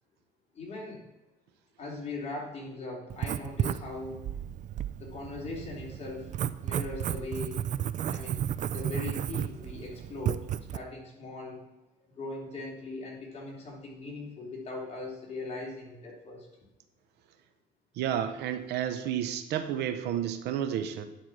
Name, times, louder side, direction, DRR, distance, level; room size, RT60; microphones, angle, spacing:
voice 1, 0.5-1.0 1.8-4.2 5.0-6.3 6.6-7.6 8.1-8.4 8.7-11.6 12.2-16.5, left 2 dB, 40° left, -2 dB, 3.4 m, -39 dB
Writing, 3.1-10.8, right 10 dB, 45° right, 0.4 m, -33 dB
voice 2, 18.0-21.0, right 10 dB, 80° right, 9 dB, 0.9 m, -31 dB
10.0 x 4.5 x 6.2 m, 1.0 s
cardioid pair, 110°, 17 cm